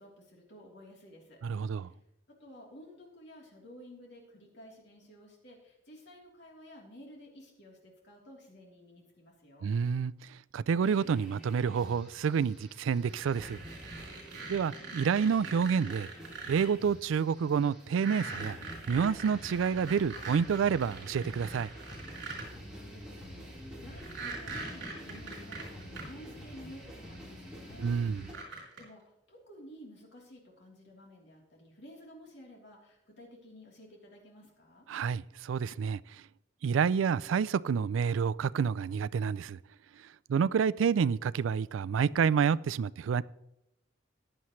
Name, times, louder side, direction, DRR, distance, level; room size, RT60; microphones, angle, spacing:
voice 1, 0.0-2.0 2.3-9.7 22.4-34.9, equal, 60° left, 3.3 m, -53 dB
voice 2, 1.4-1.9 9.6-10.1 10.5-13.6 14.5-16.1 16.5-18.6 18.9-21.7 27.8-28.2 34.9-36.0 36.6-39.6 40.3-43.2, right 6 dB, 80° right, 0.3 m, -28 dB
sound 1, 10.8-28.3, equal, 5° right, 3.8 m, -48 dB
sound 2, 13.1-16.6 17.9-22.5 24.0-26.0 27.1-27.2 28.2-28.8, right 3 dB, 60° right, 4.1 m, -42 dB
15.0 x 10.0 x 3.1 m
head